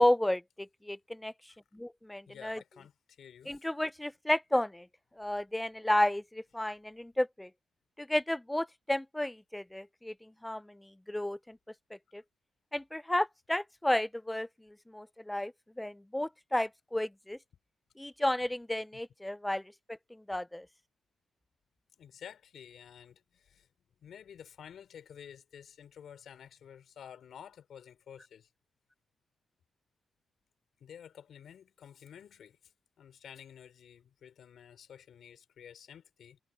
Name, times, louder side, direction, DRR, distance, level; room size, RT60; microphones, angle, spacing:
voice 1, 0.0-1.3 1.7-2.6 3.5-4.9 5.2-7.5 8.0-11.6 12.1-12.2 12.7-17.4 18.0-19.6 20.1-20.7, left 1 dB, 5° left, 0.4 m, -32 dB
voice 2, 2.3-3.7 18.9-19.0 22.0-23.7 24.0-28.5 30.8-32.7 33.0-36.4, left 8 dB, 70° left, 4.3 m, -51 dB
cardioid pair, 115°, 0 cm